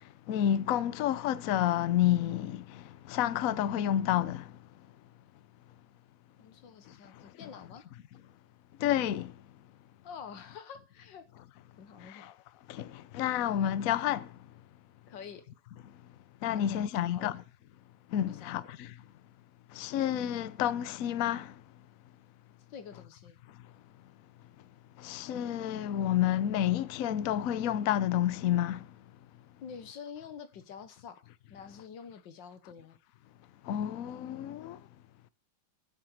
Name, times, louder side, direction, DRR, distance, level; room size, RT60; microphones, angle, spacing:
voice 1, 0.3-4.5 7.4-7.5 8.8-9.3 12.0-12.3 12.7-14.3 16.4-17.4 18.1-18.9 19.7-21.5 25.0-28.8 33.7-34.8, left 11 dB, 80° left, 0.7 m, -30 dB
voice 2, 6.4-7.9 10.0-11.3 11.8-12.3 15.1-15.4 16.6-17.3 18.3-18.7 22.7-23.4 29.6-33.0, left 7 dB, 60° left, 1.8 m, -47 dB
11.0 x 7.9 x 6.4 m
omnidirectional pair, 2.4 m